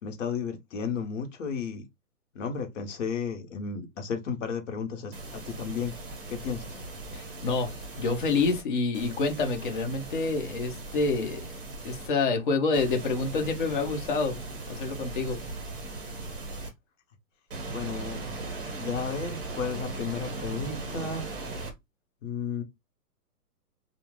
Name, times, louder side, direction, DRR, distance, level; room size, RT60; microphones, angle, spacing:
voice 1, 0.0-1.9 2.3-5.9 6.3-6.8 17.7-18.4 18.8-21.3 22.2-22.6, left 6 dB, 50° left, 0.9 m, -33 dB
sound 1, 5.1-8.6 8.9-12.1 12.7-16.7 17.5-21.7, right 2 dB, 35° right, 1.2 m, -38 dB
voice 2, 7.1-11.4 11.8-14.4 14.7-15.4, left 4 dB, 35° left, 0.6 m, -27 dB
2.4 x 2.3 x 3.1 m
hypercardioid pair, 165°, 47 cm